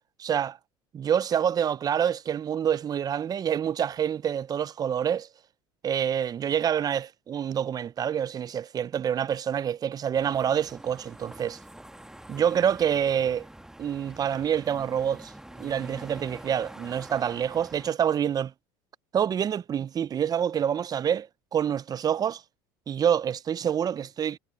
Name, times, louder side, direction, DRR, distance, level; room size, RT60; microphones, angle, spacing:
voice 1, 0.2-0.6 0.9-5.3 5.8-11.6 12.3-13.5 13.8-15.3 15.6-18.5 19.1-22.4 22.9-24.4, right 8 dB, 30° right, 0.6 m, -27 dB
sound 1, 10.1-17.9, right 1 dB, 5° right, 1.6 m, -46 dB
supercardioid pair, 100°, 12 cm